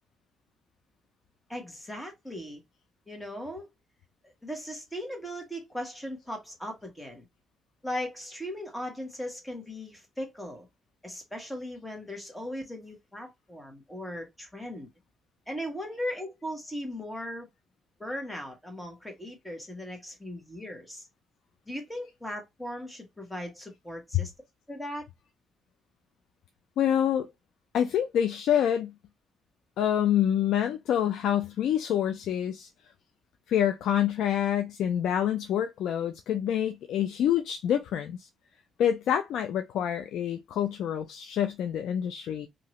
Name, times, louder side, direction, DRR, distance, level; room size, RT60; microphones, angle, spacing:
voice 1, 1.5-2.6 3.1-3.7 4.2-7.2 7.8-10.7 11.0-14.9 15.5-17.5 18.0-21.0 21.7-24.3 24.7-25.0, equal, 5° left, 1.4 m, -38 dB
voice 2, 26.8-27.3 27.7-28.9 29.8-32.7 33.5-38.3 38.8-42.5, left 10 dB, 80° left, 0.4 m, -27 dB
2.8 x 2.6 x 3.0 m
cardioid pair, 90°, 0 cm